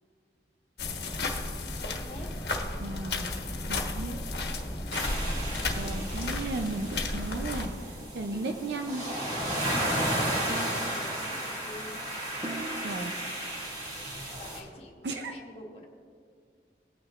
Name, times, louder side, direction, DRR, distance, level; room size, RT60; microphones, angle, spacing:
sound 1, 0.8-7.7, left 2 dB, 70° left, 1.3 m, -33 dB
voice 1, 1.8-2.3 10.5-12.0 14.4-15.9, left 1 dB, 35° left, 0 dB, 1.4 m, -47 dB
voice 2, 2.8-3.3 3.7-4.2 4.5-4.6 5.7-9.1 12.8-13.1 15.0-15.3, right 2 dB, 80° right, 4 dB, 0.6 m, -35 dB
sound 2, 4.9-14.6, right 1 dB, 40° right, 2.0 m, -33 dB
sound 3, 5.7-6.6 8.3-9.2 10.5-11.5 12.4-13.4, right 1 dB, 20° right, 0.9 m, -43 dB
19.0 x 9.1 x 2.5 m, 2.2 s
head